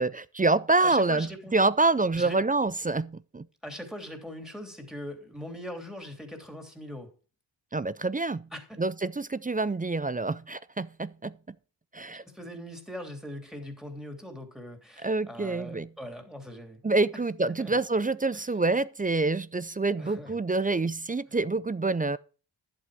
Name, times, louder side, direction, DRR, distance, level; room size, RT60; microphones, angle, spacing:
voice 1, 0.0-3.5 7.7-8.5 8.8-11.3 11.9-12.2 15.0-15.9 16.8-22.2, right 3 dB, 20° right, 0.4 m, -27 dB
voice 2, 0.8-1.6 2.2-2.4 3.6-7.1 8.5-8.8 12.2-16.8 17.1-17.2 17.5-17.8 18.3-18.5 20.0-20.4 21.3-21.4, equal, ahead, 3.2 m, -41 dB
11.0 x 7.8 x 5.1 m
cardioid pair, 65°, 48 cm